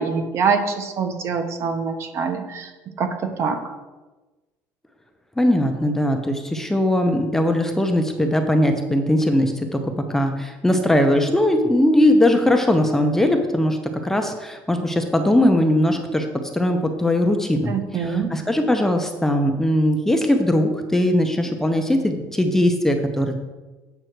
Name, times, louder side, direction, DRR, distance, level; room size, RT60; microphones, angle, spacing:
voice 1, 0.0-2.7 3.0-3.6 17.7-18.3, right 5 dB, 45° right, 7 dB, 1.0 m, -24 dB
voice 2, 5.4-9.8 10.1-13.8 14.0-16.3 16.5-23.5, left 1 dB, 5° left, 4 dB, 0.7 m, -20 dB
7.9 x 6.1 x 4.5 m, 1.2 s
cardioid pair, 135°, 6 cm